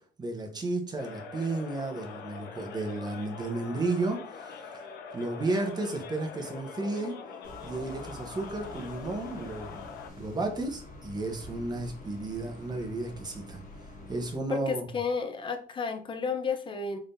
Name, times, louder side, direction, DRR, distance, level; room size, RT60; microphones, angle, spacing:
voice 1, 0.2-4.6 5.1-7.1 7.6-9.8 10.2-13.6 14.1-14.8, right 2 dB, 25° right, 4 dB, 0.9 m, -33 dB
sound 1, 1.0-10.1, left 5 dB, 70° left, 0.7 m, -43 dB
sound 2, 7.4-14.4, left 2 dB, 50° left, 1.3 m, -47 dB
voice 2, 14.5-17.0, left 5 dB, 30° left, 6 dB, 0.7 m, -32 dB
3.9 x 3.4 x 2.6 m, 0.42 s
cardioid pair, 110°, 17 cm